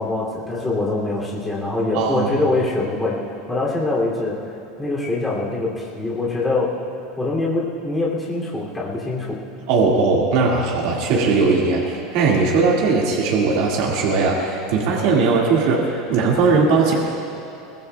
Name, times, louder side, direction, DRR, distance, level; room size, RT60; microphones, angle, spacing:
voice 1, 0.0-4.4 4.8-6.8 7.2-9.4, left 2 dB, 10° left, -5 dB, 2.8 m, -24 dB
voice 2, 1.9-2.3 9.7-16.9, right 4 dB, 50° right, -3 dB, 2.0 m, -19 dB
22.5 x 19.5 x 2.3 m, 2.9 s
supercardioid pair, 175°, 0 cm